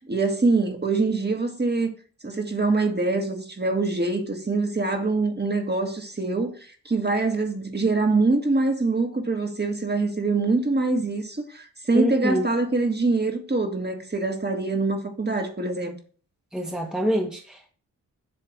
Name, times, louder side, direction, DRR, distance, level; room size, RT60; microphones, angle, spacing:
voice 1, 0.1-1.9 2.2-6.5 6.9-16.0, right 3 dB, 25° right, 1.9 m, -24 dB
voice 2, 11.9-12.5 16.5-17.7, equal, ahead, 1.4 m, -26 dB
7.9 x 3.3 x 6.4 m
supercardioid pair, 40°, 39 cm